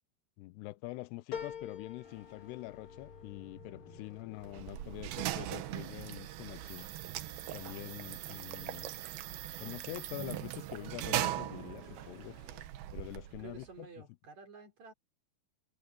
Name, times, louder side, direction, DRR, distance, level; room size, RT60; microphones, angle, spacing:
voice 1, 0.4-6.9 7.5-8.9 9.6-12.4 12.9-13.9, left 19 dB, 85° left, 2.7 m, -45 dB
sound 1, 1.3-6.1 6.6-7.3 7.6-7.7, left 8 dB, 40° left, 2.2 m, -48 dB
sound 2, 2.0-6.3 11.2-12.7, left 4 dB, 65° left, 7.8 m, -58 dB
sound 3, 4.4-13.7, right 13 dB, 70° right, 2.8 m, -40 dB
voice 2, 13.4-14.9, right 6 dB, 45° right, 4.9 m, -51 dB
omnidirectional pair, 4.9 m